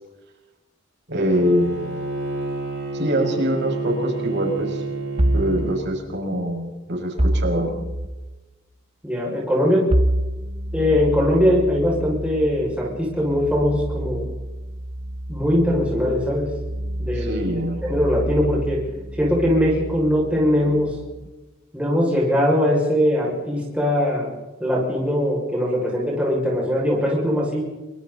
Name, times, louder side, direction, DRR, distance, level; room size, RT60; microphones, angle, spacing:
voice 1, 1.1-2.0 2.9-4.8 5.3-7.7 17.2-17.8, equal, 55° right, 1 dB, 6.3 m, -24 dB
Bowed string instrument, 1.4-5.9, right 3 dB, 75° right, 7.7 m, -29 dB
sound 1, 5.2-5.6 7.2-8.1 9.9-21.3, right 1 dB, 30° right, 1.4 m, -27 dB
voice 2, 9.0-9.8 10.7-14.2 15.3-16.5 17.0-18.8 19.1-20.9 21.7-24.3 24.6-27.6, equal, 5° right, -4 dB, 6.3 m, -21 dB
27.5 x 24.0 x 4.2 m, 1.1 s
head